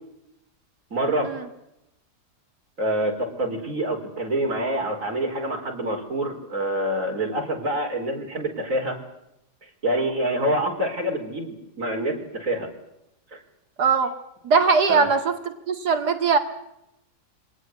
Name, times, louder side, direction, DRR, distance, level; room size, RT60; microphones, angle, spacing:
voice 1, 0.9-1.3 2.8-9.0 9.8-12.7 13.3-13.4 14.9-15.1, right 1 dB, 50° right, 2 dB, 5.0 m, -26 dB
voice 2, 13.8-14.1 14.4-15.4 15.7-16.4, right 5 dB, 80° right, 6 dB, 2.7 m, -20 dB
25.5 x 19.0 x 8.2 m, 0.85 s
omnidirectional pair, 1.7 m